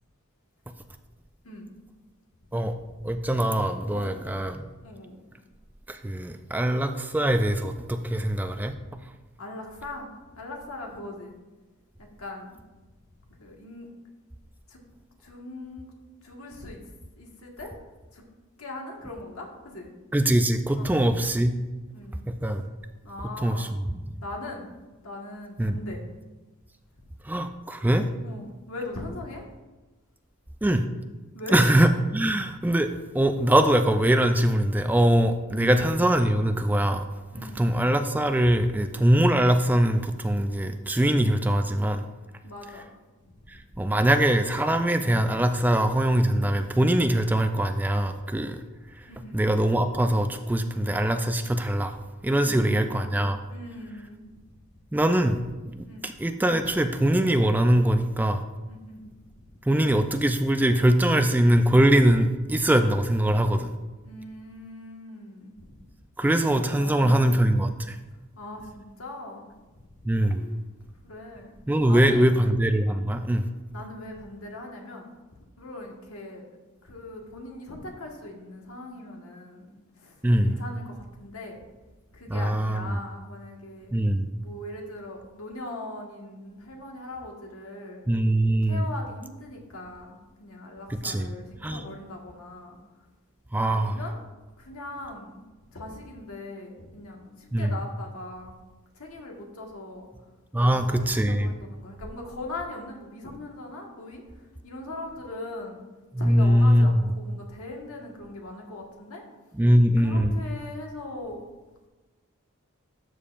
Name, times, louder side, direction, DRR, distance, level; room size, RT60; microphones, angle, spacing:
voice 1, 3.0-4.6 5.9-8.7 20.1-21.5 22.3-22.7 23.4-23.7 25.6-25.8 27.2-28.1 30.6-30.9 31.5-37.1 37.3-42.0 43.5-48.6 49.3-52.0 52.2-53.4 54.9-55.4 56.0-58.4 59.7-63.8 66.2-68.0 70.1-70.5 71.7-73.5 80.2-80.6 82.3-83.0 83.9-84.3 88.1-88.8 90.9-91.3 91.6-91.8 93.5-94.0 97.5-97.7 100.5-101.5 106.1-107.0 109.6-110.4, right 1 dB, 10° right, 8 dB, 0.3 m, -22 dB
voice 2, 3.9-4.5 4.8-5.2 8.1-8.3 8.7-8.8 9.4-11.3 12.2-12.6 13.4-13.9 14.7-14.8 15.2-15.9 16.2-16.8 17.2-17.7 18.1-18.3 18.6-19.9 20.7-21.1 21.9-22.3 23.0-23.7 24.2-24.7 25.0-26.0 28.2-29.4 31.3-31.6 35.5-35.8 37.3-37.7 42.4-42.9 49.1-49.4 52.4-53.1 53.5-54.2 55.8-56.1 58.7-59.0 64.0-65.7 66.7-67.4 68.3-69.5 70.3-70.6 71.0-71.6 71.9-72.3 73.7-75.1 75.6-76.4 76.8-81.6 82.1-83.9 84.4-88.0 88.6-92.8 93.7-94.2 94.6-95.4 95.7-98.5 98.9-100.1 100.6-105.8 106.2-109.2 110.0-111.4, left 2 dB, 90° left, 0 dB, 1.6 m, -40 dB
12.5 x 6.7 x 2.5 m, 1.2 s
head